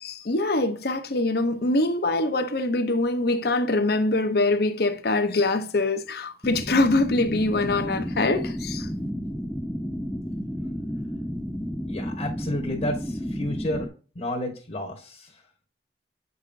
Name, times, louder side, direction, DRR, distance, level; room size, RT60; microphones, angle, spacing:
voice 1, 0.0-8.9, left 2 dB, 60° left, 0.8 m, -24 dB
sound 1, 6.4-13.9, equal, 5° left, 0.4 m, -31 dB
voice 2, 11.9-13.9 14.1-15.4, left 1 dB, 35° left, 1.3 m, -31 dB
7.9 x 5.5 x 2.6 m
head